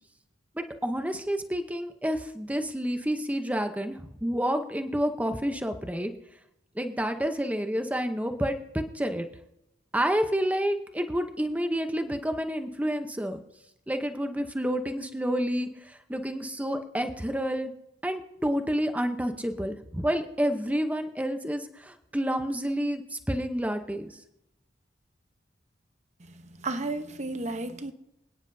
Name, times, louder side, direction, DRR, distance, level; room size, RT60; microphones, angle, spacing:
voice 1, 0.6-6.1 6.8-9.3 9.9-13.4 13.9-17.7 18.0-24.1, equal, 10° right, 0.8 m, -29 dB
voice 2, 26.2-27.9, right 2 dB, 40° right, 0.9 m, -33 dB
26.0 x 9.7 x 2.7 m
head